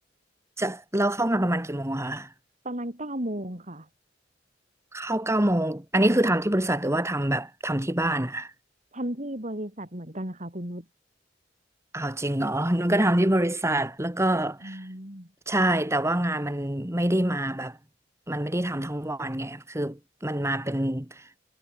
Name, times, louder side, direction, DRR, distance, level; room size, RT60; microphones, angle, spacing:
voice 1, 0.6-2.3 4.9-8.5 11.9-14.9 15.5-17.8 18.3-21.4, right 1 dB, 15° right, 2.6 m, -26 dB
voice 2, 2.6-3.8 8.9-10.8 14.6-15.3, right 1 dB, 40° right, 6.6 m, -34 dB
head